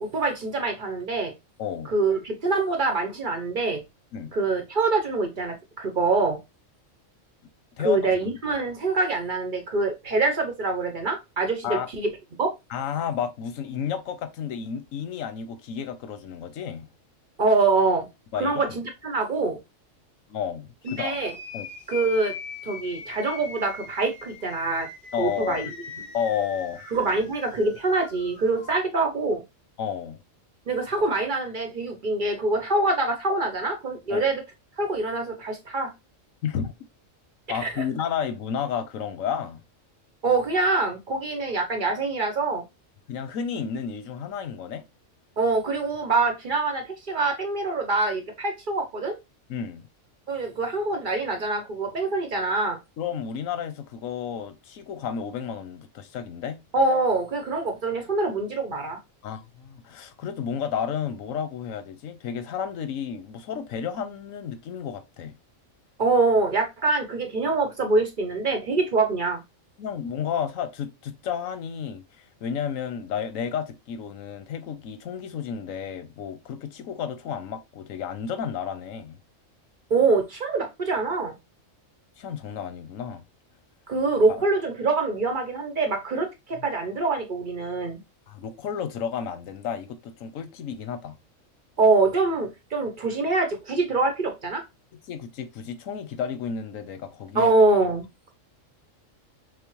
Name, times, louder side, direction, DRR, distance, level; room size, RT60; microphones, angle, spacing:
voice 1, 0.0-1.3 1.9-3.8 4.3-6.4 7.8-12.1 12.4-12.5 17.4-18.1 18.3-19.6 20.8-21.3 21.9-22.3 22.6-24.9 25.2-25.7 26.9-29.4 30.7-34.4 34.8-35.9 37.6-37.8 40.2-42.6 45.4-49.2 50.3-52.8 56.7-59.0 66.0-69.4 79.9-81.3 83.9-88.0 91.8-94.6 97.3-98.0, right 3 dB, 45° right, 0.8 m, -24 dB
voice 2, 1.6-1.9 4.1-4.3 7.8-8.3 11.6-11.9 12.7-16.9 18.3-18.8 20.3-21.2 21.5-21.7 25.1-25.6 26.1-26.8 29.8-30.2 34.1-34.2 36.4-36.7 37.5-39.6 43.1-44.8 49.5-49.9 53.0-56.6 59.2-65.4 69.8-72.0 72.4-79.2 82.2-83.2 86.6-86.7 88.3-91.2 95.1-97.5, left 7 dB, 90° left, 1.1 m, -32 dB
sound 1, 20.8-28.8, left 6 dB, 50° left, 1.0 m, -41 dB
6.0 x 2.0 x 3.0 m
omnidirectional pair, 1.3 m